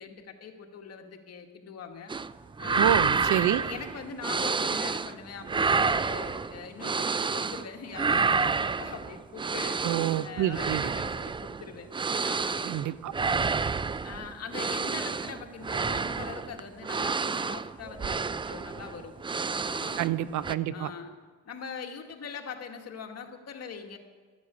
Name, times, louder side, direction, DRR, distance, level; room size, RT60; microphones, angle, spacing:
voice 1, 0.0-2.1 2.6-3.0 3.5-9.9 10.2-12.6 14.0-19.1 19.6-20.1 20.7-21.1 21.4-24.0, left 6 dB, 55° left, 3 dB, 1.9 m, -42 dB
sound 1, 2.1-2.3 2.6-5.2 5.4-7.7 7.9-20.2 20.4-20.5, right 4 dB, 15° right, 0.4 m, -29 dB
voice 2, 2.8-3.6 9.8-10.8 12.6-13.1 20.0-20.9, right 12 dB, 75° right, 16 dB, 0.7 m, -28 dB
12.5 x 10.5 x 8.2 m, 1.5 s
cardioid pair, 90°, 30 cm